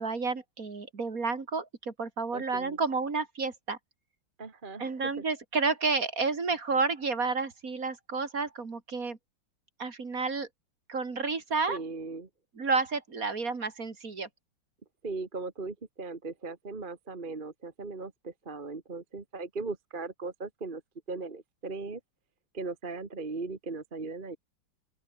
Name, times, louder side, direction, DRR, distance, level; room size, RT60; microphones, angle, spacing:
voice 1, 0.0-3.8 4.8-9.2 9.8-10.5 10.9-11.8 12.6-14.3, right 4 dB, 45° right, 2.8 m, -30 dB
voice 2, 2.3-2.8 4.4-5.2 11.7-12.3 15.0-20.8 21.1-22.0 22.5-24.4, right 3 dB, 25° right, 1.8 m, -38 dB
open air
omnidirectional pair, 2.1 m